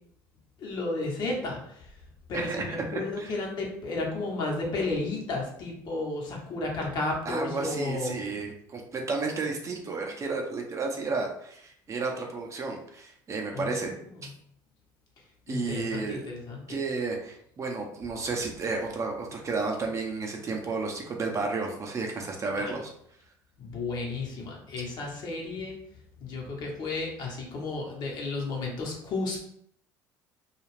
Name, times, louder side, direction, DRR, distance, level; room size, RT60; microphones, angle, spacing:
voice 1, 0.6-1.6 2.3-8.2 13.5-13.8 15.5-16.8 22.6-22.7 23.6-25.8 26.2-29.4, left 3 dB, 55° left, -1 dB, 1.0 m, -33 dB
voice 2, 2.3-3.4 7.3-14.0 15.5-16.3 16.7-22.9, right 3 dB, 35° right, 1 dB, 0.6 m, -32 dB
2.4 x 2.3 x 3.2 m, 0.70 s
supercardioid pair, 85°, 9 cm